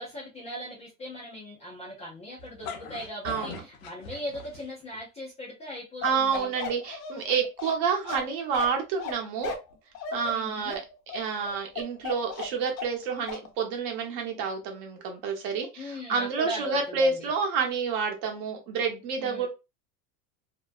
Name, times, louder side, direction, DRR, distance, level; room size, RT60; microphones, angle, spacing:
voice 1, 0.0-6.5 10.3-10.8 15.8-17.3 19.2-19.5, equal, 15° left, -3 dB, 0.4 m, -39 dB
sound 1, 2.4-5.0, left 5 dB, 90° left, 0.7 m, -41 dB
voice 2, 3.2-3.6 6.0-9.5 10.1-10.8 11.1-19.5, right 5 dB, 50° right, 2 dB, 0.9 m, -29 dB
Bark, 6.0-13.0 13.3-13.5, left 6 dB, 55° left, 0.7 m, -36 dB
2.6 x 2.0 x 2.3 m, 0.26 s
supercardioid pair, 140°, 43 cm